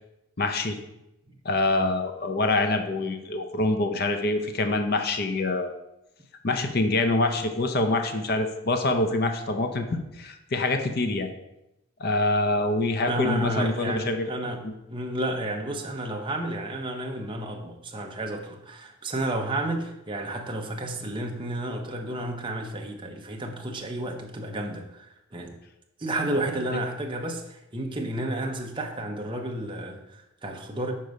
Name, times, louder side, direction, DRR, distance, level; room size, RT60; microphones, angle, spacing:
voice 1, 0.4-0.8 1.4-5.7 6.4-11.3 12.0-14.3 14.6-14.7, left 2 dB, 45° left, 6 dB, 0.6 m, -25 dB
voice 2, 13.1-25.5 26.0-30.9, right 1 dB, 25° right, 2 dB, 0.8 m, -31 dB
6.6 x 4.6 x 5.2 m, 0.89 s
head